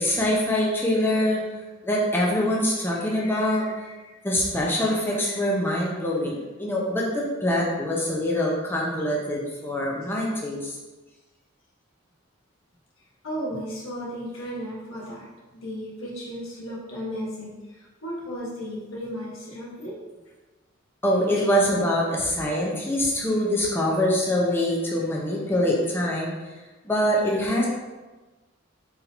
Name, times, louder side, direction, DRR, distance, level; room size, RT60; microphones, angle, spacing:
voice 1, 0.0-1.4 1.8-3.9 4.2-10.7 21.0-26.3 26.8-27.7, left 1 dB, 10° left, -4 dB, 0.7 m, -24 dB
voice 2, 13.2-15.3 15.5-20.0 21.4-21.5, equal, 90° left, -4 dB, 1.3 m, -34 dB
4.0 x 2.8 x 4.3 m, 1.2 s
head